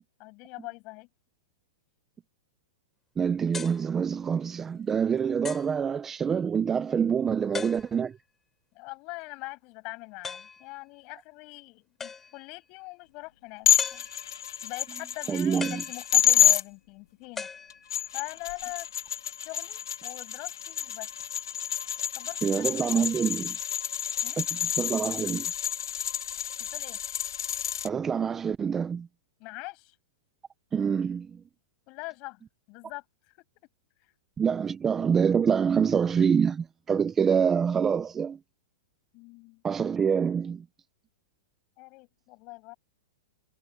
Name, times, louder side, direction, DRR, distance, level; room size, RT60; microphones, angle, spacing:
voice 1, 0.2-1.1 7.2-7.6 8.7-14.1 14.6-17.5 18.1-18.9 19.4-21.1 22.1-23.1 24.2-24.4 26.6-27.0 29.4-29.9 31.9-32.4 32.7-33.0 34.0-34.1 39.1-39.6 41.8-42.8, left 26 dB, 40° left, 7.4 m, -42 dB
voice 2, 3.2-8.2 15.3-15.8 22.4-23.6 24.4-24.5 24.8-25.5 27.8-29.1 30.7-31.4 34.4-38.4 39.6-40.6, right 7 dB, 15° right, 0.6 m, -26 dB
sound 1, 3.5-3.9 4.6-4.7 5.4-5.8 7.5-8.2 10.2-10.7 12.0-12.5 13.8-14.5 15.6-16.5 17.4-18.2, left 5 dB, 10° left, 4.3 m, -39 dB
sound 2, 13.7-16.6 17.7-27.9, left 10 dB, 85° left, 2.8 m, -28 dB
hypercardioid pair, 150°, 2 cm